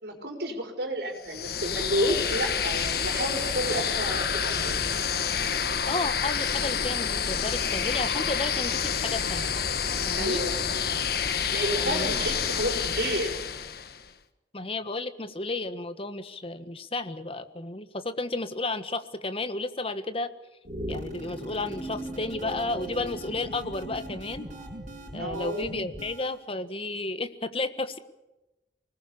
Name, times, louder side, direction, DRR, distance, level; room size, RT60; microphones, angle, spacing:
voice 1, 0.0-4.8 9.3-9.5 10.2-10.7 11.5-13.4 25.2-25.7, right 1 dB, 70° right, 3 dB, 5.0 m, -31 dB
sound 1, 1.2-14.0, left 7 dB, 60° left, 1.4 m, -28 dB
voice 2, 5.9-9.6 10.0-10.4 11.7-12.1 14.5-20.3 20.9-24.5 25.1-28.0, left 2 dB, 35° left, 10 dB, 1.5 m, -32 dB
sound 2, 20.6-26.4, equal, 45° right, 6.5 m, -40 dB
sound 3, 21.5-24.9, right 2 dB, 15° right, 4.8 m, -42 dB
24.5 x 20.0 x 7.1 m, 1.0 s
head